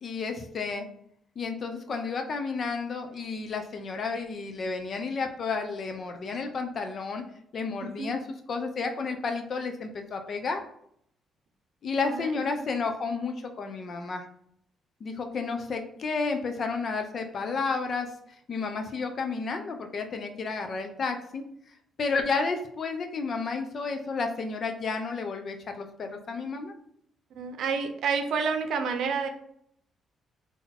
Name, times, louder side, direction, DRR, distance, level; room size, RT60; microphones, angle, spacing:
voice 1, 0.0-0.9 1.4-7.2 7.5-8.2 8.5-10.6 11.8-14.3 15.0-18.1 18.5-21.4 22.0-26.7, left 4 dB, 50° left, 5 dB, 0.8 m, -31 dB
voice 2, 7.8-8.1 12.0-12.3 27.3-29.3, right 5 dB, 75° right, 7 dB, 0.6 m, -29 dB
3.9 x 3.0 x 4.3 m, 0.70 s
cardioid pair, 90°, 0 cm